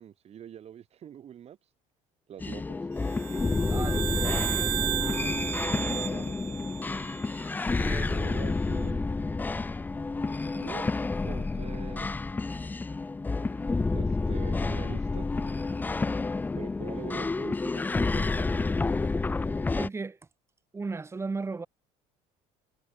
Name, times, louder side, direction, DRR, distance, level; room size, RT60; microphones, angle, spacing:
voice 1, 0.0-1.6 2.3-2.8 3.7-6.5 7.9-9.1 10.5-10.9 11.2-12.1 13.3-13.5 13.9-15.3 16.6-18.7, right 9 dB, 45° right, 3.5 m, -44 dB
sound 1, 2.4-19.9, left 3 dB, 10° left, 0.5 m, -29 dB
sound 2, 3.1-7.6, right 27 dB, 80° right, 2.6 m, -34 dB
voice 2, 3.7-4.0 7.7-8.1 19.7-20.2 20.7-21.7, right 4 dB, 15° right, 2.3 m, -35 dB
cardioid pair, 115°, 15 cm